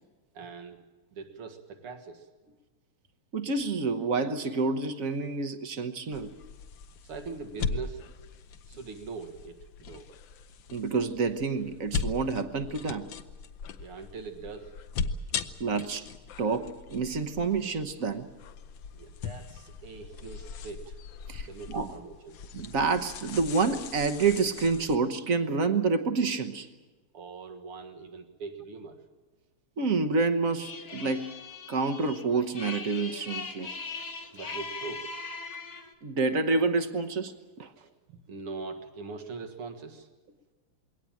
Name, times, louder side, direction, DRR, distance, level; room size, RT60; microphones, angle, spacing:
voice 1, 0.3-0.8 1.1-2.3 7.0-8.0 8.7-10.1 13.8-14.7 18.9-21.0 21.4-22.4 27.1-29.0 34.3-35.0 37.8-40.1, right 4 dB, 80° right, 4 dB, 2.6 m, -42 dB
voice 2, 3.3-6.3 10.7-13.1 15.6-16.1 16.4-18.3 21.3-21.9 22.5-26.7 29.8-31.3 31.7-33.7 36.0-37.7, right 4 dB, 45° right, 8 dB, 1.2 m, -28 dB
sound 1, 6.1-25.0, left 5 dB, 70° left, 1.5 m, -39 dB
sound 2, 30.6-35.9, left 4 dB, 45° left, 1.9 m, -40 dB
22.0 x 18.0 x 8.9 m, 1.3 s
omnidirectional pair, 2.4 m